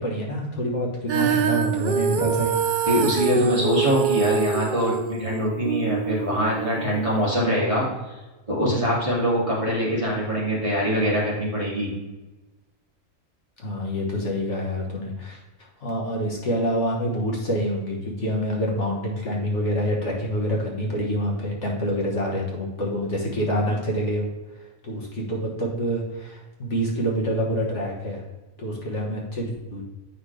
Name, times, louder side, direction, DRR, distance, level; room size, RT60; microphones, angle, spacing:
voice 1, 0.0-2.5 13.6-15.4 15.8-24.3 24.8-28.2 28.6-29.8, equal, 55° left, -2 dB, 1.7 m, -26 dB
Female singing, 1.1-7.3, right 7 dB, 85° right, 0.4 m, -25 dB
voice 2, 2.9-7.9 8.5-11.9, equal, 25° right, -6 dB, 2.4 m, -23 dB
8.7 x 5.7 x 3.3 m, 1.1 s
omnidirectional pair, 1.5 m